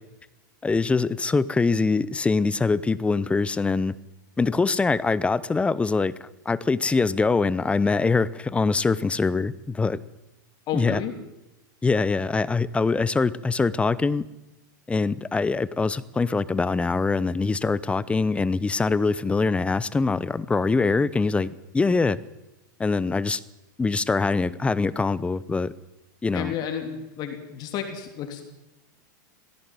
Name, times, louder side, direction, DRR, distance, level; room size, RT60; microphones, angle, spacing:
voice 1, 0.6-3.9 4.4-6.1 6.5-10.0 10.7-11.0 11.8-14.3 14.9-22.2 22.8-23.4 23.8-25.7 26.2-26.5, left 4 dB, 10° left, 18 dB, 0.7 m, -23 dB
voice 2, 10.7-11.1 26.3-28.5, left 9 dB, 40° left, 5 dB, 3.1 m, -31 dB
18.5 x 16.0 x 9.3 m, 0.95 s
supercardioid pair, 125°, 11 cm